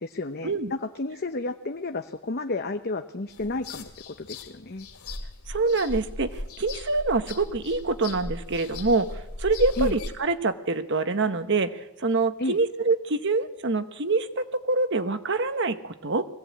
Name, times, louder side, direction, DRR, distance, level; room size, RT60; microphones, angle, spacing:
voice 1, 0.0-4.9 9.8-10.0 12.4-12.6, left 2 dB, 45° left, 7 dB, 0.8 m, -32 dB
sound 1, 3.3-10.1, left 1 dB, 90° left, 2.6 m, -37 dB
voice 2, 5.5-16.2, right 3 dB, 55° right, 10 dB, 1.1 m, -25 dB
21.0 x 17.0 x 8.5 m, 0.97 s
head